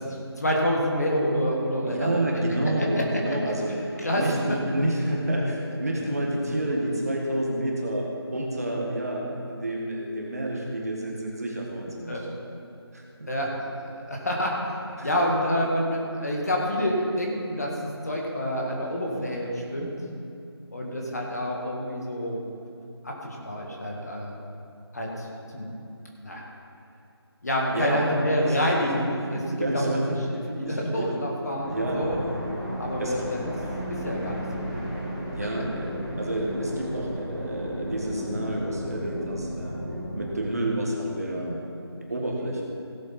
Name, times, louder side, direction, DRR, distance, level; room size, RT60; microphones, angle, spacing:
voice 1, 0.1-2.2 2.8-3.0 3.4-4.2 5.4-5.5 6.0-6.1 12.1-12.2 13.3-13.5 13.8-14.8 15.0-17.7 18.0-19.9 20.7-22.4 23.0-24.4 24.9-25.3 25.5-25.7 26.2-26.4 27.4-29.4 29.7-29.9 30.5-32.2 32.8-33.4 33.9-34.8, equal, 40° left, -2 dB, 1.8 m, -28 dB
voice 2, 1.8-12.2 12.9-13.3 15.0-15.1 27.7-29.0 29.3-30.2 30.6-31.1 31.7-32.4 33.0-33.3 33.6-33.8 35.3-35.9 36.2-39.8 40.1-41.6 42.1-42.6, right 1 dB, 35° right, -2 dB, 1.7 m, -29 dB
sound 1, 31.6-40.3, equal, 15° left, 1.8 m, -34 dB
17.0 x 7.8 x 4.2 m, 2.6 s
figure-of-eight pair, 175°, 14 cm